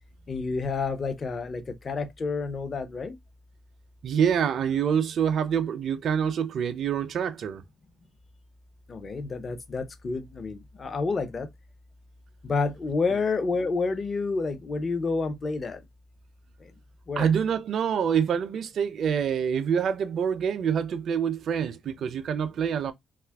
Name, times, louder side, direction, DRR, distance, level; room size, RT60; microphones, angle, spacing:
voice 1, 0.3-3.2 8.9-11.5 12.4-15.8 17.1-17.3, left 4 dB, 40° left, 0.6 m, -29 dB
voice 2, 4.0-7.6 17.2-22.9, right 7 dB, 65° right, 0.4 m, -26 dB
2.6 x 2.4 x 3.3 m
cardioid pair, 90°, 0 cm